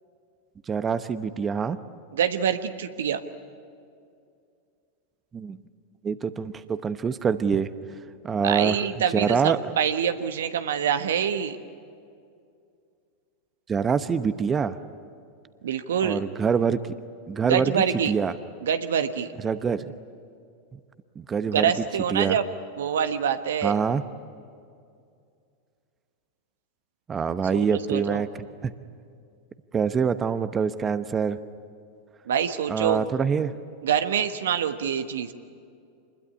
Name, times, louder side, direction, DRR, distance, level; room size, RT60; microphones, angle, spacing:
voice 1, 0.7-1.8 5.3-5.6 6.0-7.7 8.2-8.8 9.1-9.6 13.7-14.8 16.0-16.8 17.3-18.3 19.4-19.9 21.2-21.7 22.1-22.4 23.6-24.0 27.1-28.3 28.6-28.7 29.7-31.4 32.7-33.5, right 6 dB, 25° right, 12 dB, 0.9 m, -25 dB
voice 2, 2.1-3.2 8.4-11.6 15.6-16.2 17.4-18.1 18.6-19.3 21.5-22.5 22.8-23.8 27.5-28.2 32.3-33.0 33.8-35.3, right 8 dB, 75° right, 9 dB, 1.2 m, -25 dB
26.0 x 21.0 x 9.9 m, 2.4 s
hypercardioid pair, 95°, 0 cm